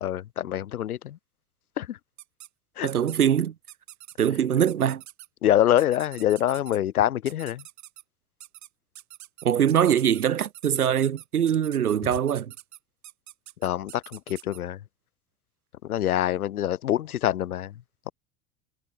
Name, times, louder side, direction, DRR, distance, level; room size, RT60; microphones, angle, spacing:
voice 1, 0.0-1.2 1.8-2.0 2.8-2.9 5.4-7.6 13.6-14.8 15.8-17.7, left 12 dB, 85° left, 0.6 m, -25 dB
sound 1, 2.2-2.5 2.9-3.3 3.7-4.3 4.7-5.3 5.8-6.8 7.3-8.0 8.4-8.7 8.9-14.6, right 14 dB, 40° right, 1.7 m, -45 dB
voice 2, 2.8-3.5 4.2-5.0 9.4-12.5, right 9 dB, 85° right, 1.1 m, -23 dB
figure-of-eight pair, 75°, 43 cm